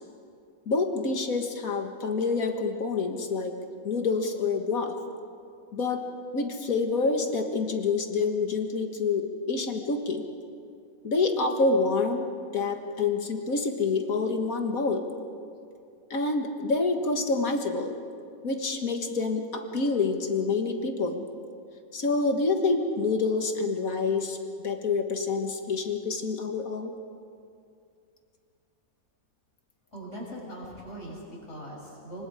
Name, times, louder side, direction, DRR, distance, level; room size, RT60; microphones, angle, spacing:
voice 1, 0.7-3.5 3.8-4.9 5.7-6.1 6.3-10.3 11.0-12.2 12.5-15.1 16.1-17.9 18.4-21.2 21.9-24.4 24.6-26.9, left 4 dB, 70° left, 5 dB, 2.1 m, -27 dB
voice 2, 29.9-32.2, equal, 50° left, -4 dB, 7.6 m, -41 dB
27.0 x 25.0 x 5.0 m, 2.4 s
omnidirectional pair, 1.6 m